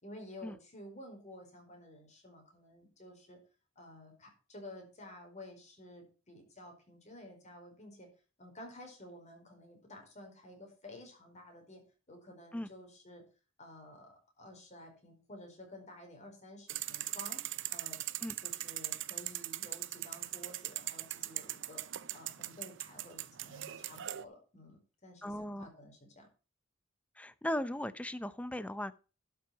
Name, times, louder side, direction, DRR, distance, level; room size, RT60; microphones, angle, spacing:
voice 1, 0.0-3.4 3.8-8.1 8.4-11.8 12.1-13.2 13.6-17.4 17.7-18.0 18.4-26.3, left 1 dB, 35° left, 2 dB, 4.7 m, -52 dB
sound 1, 16.7-24.2, right 14 dB, 65° right, 0.7 m, -40 dB
voice 2, 25.2-25.7 27.2-28.9, left 1 dB, 5° left, 14 dB, 0.6 m, -37 dB
11.5 x 6.1 x 5.7 m, 0.34 s
head